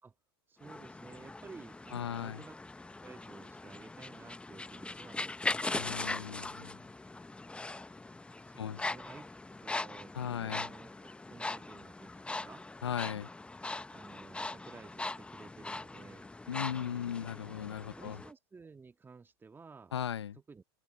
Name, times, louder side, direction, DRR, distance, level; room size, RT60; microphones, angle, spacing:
voice 1, 0.5-2.6 3.0-5.7 8.4-12.7 13.9-16.3 17.5-19.9 20.4-20.6, right 4 dB, 15° right, 2.0 m, -54 dB
sound 1, 0.6-18.3, left 2 dB, 10° left, 0.9 m, -41 dB
voice 2, 1.9-2.4 5.8-6.8 8.6-8.8 10.1-10.7 12.8-13.3 16.5-18.2 19.9-20.4, left 9 dB, 85° left, 0.7 m, -37 dB
hypercardioid pair, 95°, 14 cm